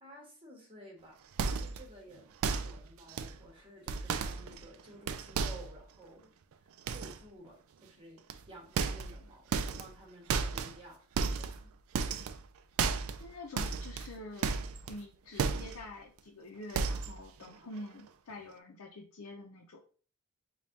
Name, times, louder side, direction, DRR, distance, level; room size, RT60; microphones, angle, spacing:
voice 1, 0.0-6.3 6.9-11.0 11.3-11.7, right 1 dB, 25° right, -1 dB, 1.3 m, -53 dB
sound 1, 1.4-1.9 2.4-2.8 3.1-3.4 3.9-5.8 6.9-7.2 8.3-8.4 8.8-9.2 9.5-10.0 10.3-10.8 11.2-11.6 11.9-12.4 12.8-13.3 13.6-15.0 15.4-15.8 16.2-16.3 16.7-17.2 17.5-17.8 18.1-18.2, right 5 dB, 70° right, 0.4 m, -33 dB
voice 2, 13.2-14.5 14.9-19.9, left 2 dB, 75° left, -1 dB, 0.6 m, -47 dB
5.2 x 2.4 x 2.8 m, 0.40 s
head